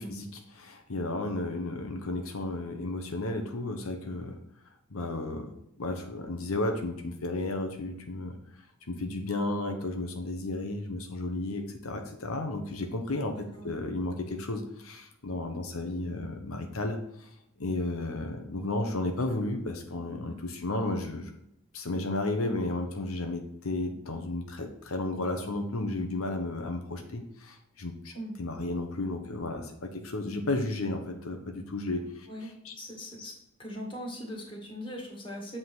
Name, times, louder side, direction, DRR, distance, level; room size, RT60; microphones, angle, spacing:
voice 1, 0.0-4.4 4.9-5.5 5.8-8.6 8.9-13.3 13.6-17.3 17.6-21.3 21.7-28.1 28.4-32.3 32.6-32.7, left 2 dB, 85° left, 4 dB, 0.9 m, -33 dB
voice 2, 13.3-13.7 28.1-28.3 32.3-33.3 33.6-35.6, equal, 25° left, -2 dB, 2.2 m, -40 dB
7.7 x 3.8 x 6.1 m, 0.80 s
head